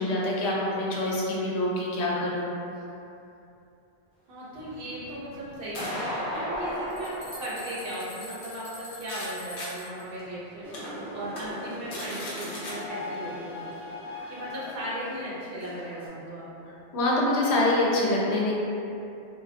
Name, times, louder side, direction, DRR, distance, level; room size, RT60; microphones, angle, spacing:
voice 1, 0.0-2.5 14.1-14.3 16.9-18.6, left 1 dB, 90° left, -4 dB, 0.8 m, -25 dB
voice 2, 4.3-13.7 14.3-16.7, right 1 dB, 65° right, -7 dB, 0.8 m, -37 dB
sound 1, 4.5-9.3 9.6-9.7 10.2-10.3 10.7-10.9 11.3-11.4 11.7-12.7, left 1 dB, 60° left, 0.8 m, -36 dB
sound 2, 6.5-10.0, left 1 dB, 35° left, 0.4 m, -45 dB
sound 3, 10.6-16.1, left 2 dB, ahead, 0.7 m, -40 dB
2.4 x 2.3 x 2.4 m, 2.7 s
omnidirectional pair, 1.1 m